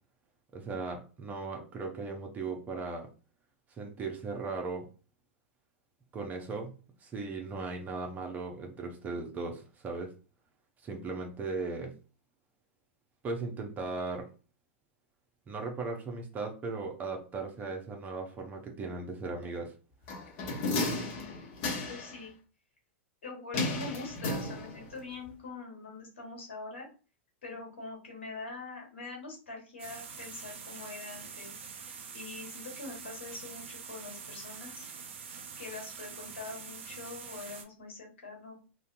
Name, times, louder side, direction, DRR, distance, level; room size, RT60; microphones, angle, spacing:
voice 1, 0.5-3.1 3.8-4.9 6.1-6.7 7.0-10.1 10.8-11.9 13.2-14.3 15.5-19.7, right 3 dB, 25° right, 2 dB, 0.6 m, -37 dB
sound 1, 20.1-22.2 23.5-25.0 25.3-25.4, left 2 dB, 40° left, 0.7 m, -33 dB
voice 2, 21.9-22.3 23.2-26.9 27.4-31.5 32.1-34.8 35.6-38.5, left 3 dB, 70° left, -1 dB, 1.2 m, -44 dB
sound 2, 29.8-37.6, right 6 dB, 65° right, 0.5 m, -45 dB
2.6 x 2.2 x 2.5 m, 0.35 s
figure-of-eight pair, 95°, 7 cm